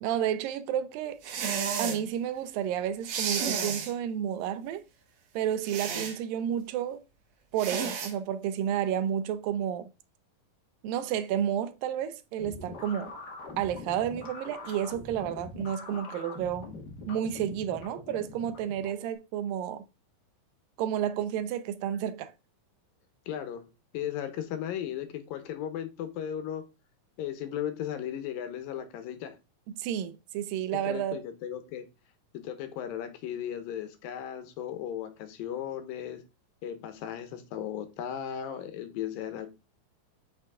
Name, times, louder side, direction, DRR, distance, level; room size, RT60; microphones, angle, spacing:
voice 1, 0.0-1.2 1.8-4.8 5.4-7.0 7.5-9.9 10.8-13.1 13.6-16.7 17.1-19.8 20.8-22.3 29.8-31.2, right 10 dB, 80° right, 2.3 m, -31 dB
sound 1, 1.2-2.0 3.0-3.9 5.6-6.2 7.6-8.1, right 6 dB, 60° right, 2.1 m, -31 dB
sound 2, 12.4-19.1, left 3 dB, 40° left, 1.5 m, -43 dB
voice 2, 23.3-23.6 23.9-26.7 27.2-29.4 30.7-31.8 32.3-36.2 36.6-39.5, left 10 dB, 75° left, 2.7 m, -36 dB
8.0 x 6.3 x 3.6 m
omnidirectional pair, 4.1 m